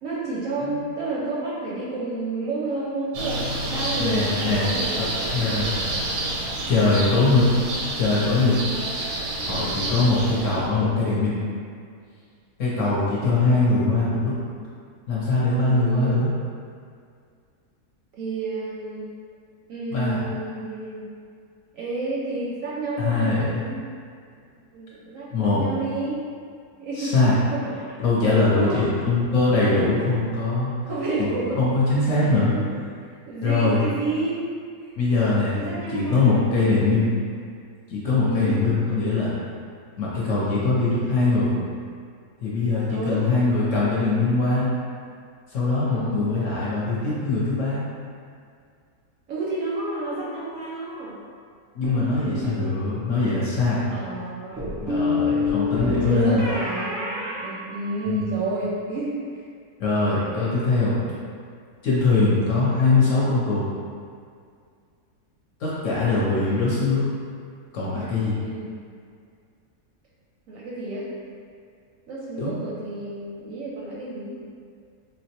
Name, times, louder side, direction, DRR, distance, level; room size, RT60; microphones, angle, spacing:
voice 1, 0.0-5.6 6.8-7.1 15.6-16.2 18.1-19.1 19.7-21.0 21.7-23.8 24.7-26.2 26.8-27.2 27.5-28.0 28.5-28.9 30.8-31.6 32.1-32.6 33.3-34.9 35.5-36.9 38.2-38.6 42.9-43.4 45.9-46.2 49.3-51.2 52.2-52.6 53.9-54.7 55.3-59.4 68.4-68.7 70.5-71.1 72.1-74.4, right 2 dB, 70° right, -6 dB, 0.8 m, -31 dB
sound 1, 3.1-10.7, right 2 dB, 90° right, 1.2 m, -29 dB
voice 2, 4.0-4.7 5.0-5.1 5.3-5.7 6.7-7.5 8.0-8.6 9.4-11.4 12.6-14.3 15.1-16.3 19.9-20.2 23.0-23.6 25.3-25.7 27.0-27.3 28.0-30.7 31.2-31.3 31.6-32.5 33.4-33.8 35.0-37.1 37.9-39.3 40.0-41.5 42.4-44.7 45.5-47.8 51.7-53.9 54.8-56.5 58.0-58.2 59.8-61.0 61.8-63.7 65.6-67.1 67.7-68.4 72.4-72.6, left 3 dB, 60° left, -7 dB, 0.9 m, -22 dB
sound 2, 51.8-52.7 54.6-58.3, left 4 dB, 15° right, 0.6 m, -28 dB
3.9 x 2.1 x 2.8 m, 2.2 s
omnidirectional pair, 1.7 m